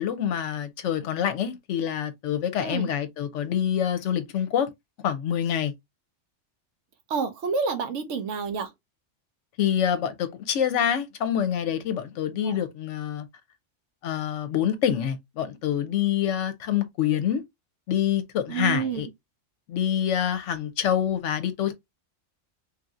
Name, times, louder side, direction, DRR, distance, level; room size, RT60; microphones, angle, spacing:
voice 1, 0.0-4.7 5.0-5.7 9.6-13.3 14.0-17.4 17.9-19.1 19.7-21.7, left 9 dB, 75° left, 0.9 m, -26 dB
voice 2, 7.1-8.7 12.4-12.6 18.5-19.0, right 5 dB, 75° right, 1.0 m, -29 dB
3.0 x 2.7 x 2.3 m
omnidirectional pair, 1.3 m